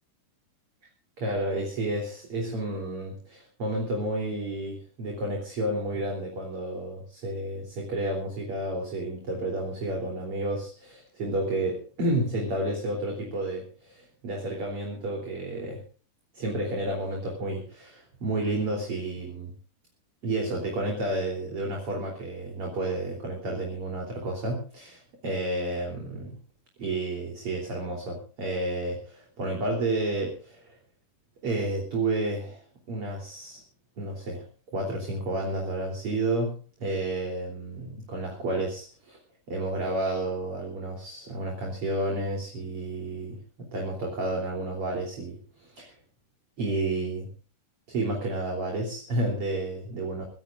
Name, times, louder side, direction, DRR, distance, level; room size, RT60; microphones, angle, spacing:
voice 1, 1.2-15.8 16.3-19.5 20.2-26.3 26.8-30.8 31.4-32.6 32.9-33.6 34.0-34.5 34.7-39.2 39.5-45.9 46.6-47.3 47.9-50.3, right 1 dB, 35° right, 0 dB, 3.9 m, -31 dB
25.0 x 16.0 x 2.5 m, 0.39 s
omnidirectional pair, 4.6 m